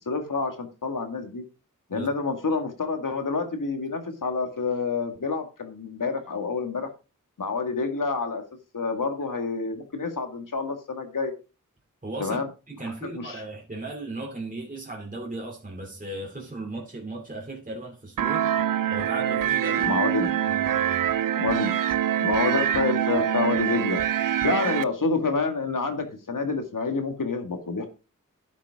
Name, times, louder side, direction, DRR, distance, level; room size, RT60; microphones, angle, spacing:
voice 1, 0.1-1.4 1.9-6.9 7.4-8.4 8.7-11.3 12.2-12.5 12.8-13.4 19.8-20.3 21.3-21.7 22.2-27.9, left 4 dB, 75° left, 2.1 m, -28 dB
voice 2, 12.0-12.4 12.7-18.5 18.9-20.0 20.4-21.1, right 2 dB, 25° right, 2.8 m, -36 dB
sound 1, 18.2-24.8, right 10 dB, 85° right, 0.5 m, -25 dB
11.5 x 7.5 x 3.7 m
wide cardioid pair, 75°, 32 cm